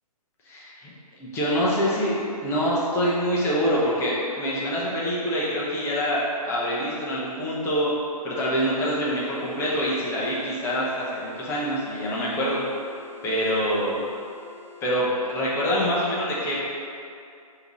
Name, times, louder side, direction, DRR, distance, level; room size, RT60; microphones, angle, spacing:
voice 1, 0.5-7.9 8.2-12.6 13.2-14.0 14.8-16.5, equal, 15° left, -6 dB, 0.6 m, -25 dB
sound 1, 9.1-14.9, left 7 dB, 50° left, 0.8 m, -48 dB
4.8 x 2.8 x 3.0 m, 2.5 s
hypercardioid pair, 140°, 20 cm